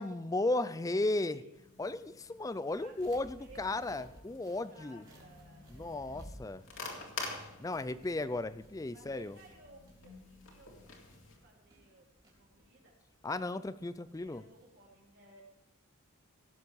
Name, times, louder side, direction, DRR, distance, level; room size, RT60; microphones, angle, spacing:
voice 1, 0.0-1.4 1.8-5.0 5.7-6.6 7.6-9.4 13.2-14.4, left 2 dB, 15° left, 14 dB, 0.3 m, -35 dB
voice 2, 0.7-1.5 2.8-4.2 4.7-6.3 6.6-8.1 8.9-12.1 12.3-13.0 13.4-15.4, right 2 dB, 55° right, -3 dB, 3.4 m, -59 dB
sound 1, 1.5-11.4, left 4 dB, 65° left, 2.4 m, -49 dB
sound 2, 2.7-14.9, equal, 20° right, 3.5 m, -58 dB
17.0 x 7.3 x 4.7 m, 0.90 s
head